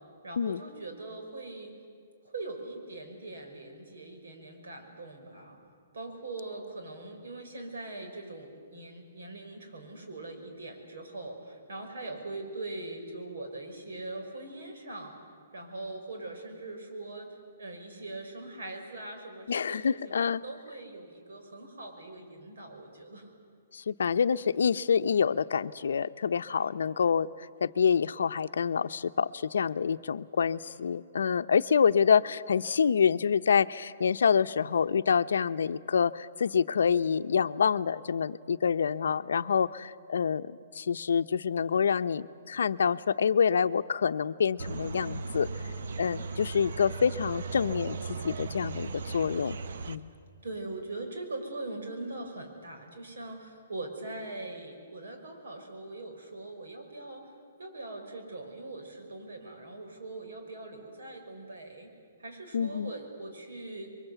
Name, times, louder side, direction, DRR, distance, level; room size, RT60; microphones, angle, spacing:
voice 1, 0.2-1.7 2.2-5.6 5.9-15.2 15.5-23.3 50.4-57.2 57.6-61.9 62.2-63.9, right 2 dB, 75° right, 3 dB, 5.7 m, -41 dB
voice 2, 19.5-20.4 23.7-27.3 27.6-45.5 46.0-48.0 48.2-49.6 49.9-50.1 62.5-62.9, left 6 dB, 80° left, 12 dB, 0.7 m, -27 dB
sound 1, 44.6-50.0, right 4 dB, 60° right, 1.1 m, -37 dB
28.5 x 23.0 x 8.2 m, 2.2 s
hypercardioid pair, 175°, 0 cm